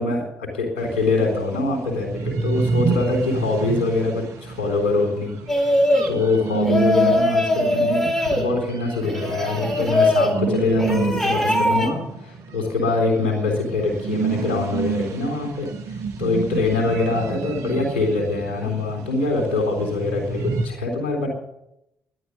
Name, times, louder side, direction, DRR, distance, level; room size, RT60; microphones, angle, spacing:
voice 1, 0.0-5.8 6.1-21.3, left 3 dB, 85° left, 2 dB, 3.7 m, -24 dB
sound 1, 0.8-20.7, right 5 dB, 65° right, 1.5 m, -29 dB
sound 2, 5.5-6.1 6.6-8.5 9.0-10.3 10.8-11.9, left 1 dB, 5° left, 4.2 m, -21 dB
12.5 x 11.0 x 8.1 m, 0.84 s
hypercardioid pair, 45°, 6 cm